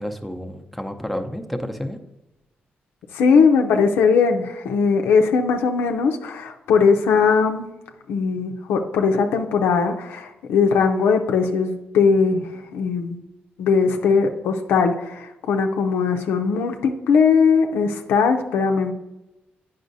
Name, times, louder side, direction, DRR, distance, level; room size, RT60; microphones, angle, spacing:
voice 1, 0.0-2.0, equal, ahead, 6 dB, 0.7 m, -30 dB
voice 2, 3.1-7.7 8.1-13.2 13.6-18.9, left 5 dB, 90° left, 4 dB, 0.5 m, -19 dB
8.9 x 5.4 x 2.6 m, 0.97 s
cardioid pair, 70°, 4 cm